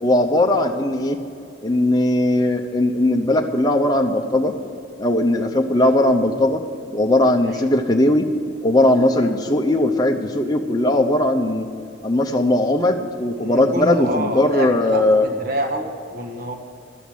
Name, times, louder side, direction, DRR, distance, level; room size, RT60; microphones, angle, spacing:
voice 1, 0.0-1.2 1.6-4.5 5.0-6.6 6.9-8.3 8.6-11.7 12.0-15.3, left 1 dB, 20° left, 2 dB, 0.7 m, -18 dB
voice 2, 13.4-16.5, equal, 50° right, 4 dB, 1.4 m, -28 dB
12.5 x 7.9 x 8.6 m, 2.5 s
head